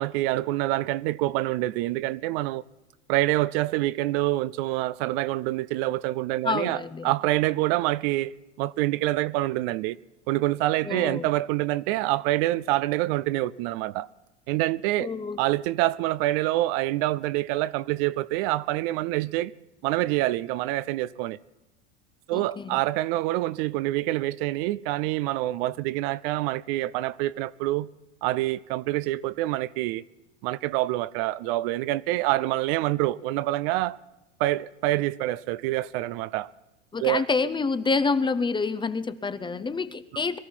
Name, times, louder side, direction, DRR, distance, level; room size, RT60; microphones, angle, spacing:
voice 1, 0.0-2.6 3.1-8.3 8.6-10.0 10.3-14.1 14.5-15.1 15.4-19.5 19.8-21.4 22.3-27.9 28.2-30.0 30.4-34.0 34.4-36.5 37.0-37.2, right 17 dB, 55° right, 0.5 m, -26 dB
voice 2, 6.4-7.1 10.8-11.3 15.0-15.4 22.3-22.8 36.9-40.4, left 4 dB, 15° left, 0.6 m, -27 dB
22.5 x 13.5 x 4.5 m
hypercardioid pair, 90°, 35 cm